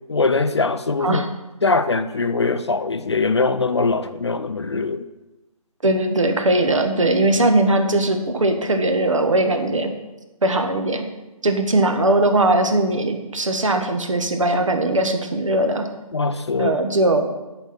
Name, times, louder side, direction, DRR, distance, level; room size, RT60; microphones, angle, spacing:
voice 1, 0.1-1.2 1.6-5.0 16.1-16.8, left 3 dB, 45° left, 0.5 m, -21 dB
voice 2, 5.8-9.9 10.4-11.1 11.4-15.9 16.6-17.3, right 2 dB, 55° right, 1.2 m, -19 dB
10.5 x 4.3 x 5.8 m
figure-of-eight pair, 160°, 19 cm